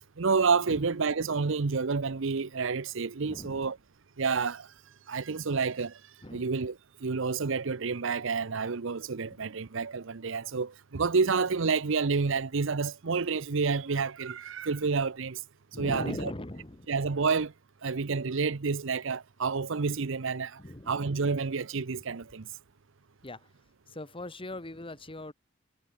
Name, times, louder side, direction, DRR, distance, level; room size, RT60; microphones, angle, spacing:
voice 1, 0.2-3.8 4.2-4.7 5.1-6.0 6.3-15.4 15.8-16.3 16.9-17.5 17.8-20.6 20.9-22.5, right 4 dB, 65° right, 0.7 m, -29 dB
voice 2, 3.3-3.6 6.2-6.5 15.7-16.9 20.6-20.9 23.2-23.5 23.9-25.3, left 1 dB, 25° left, 2.0 m, -39 dB
head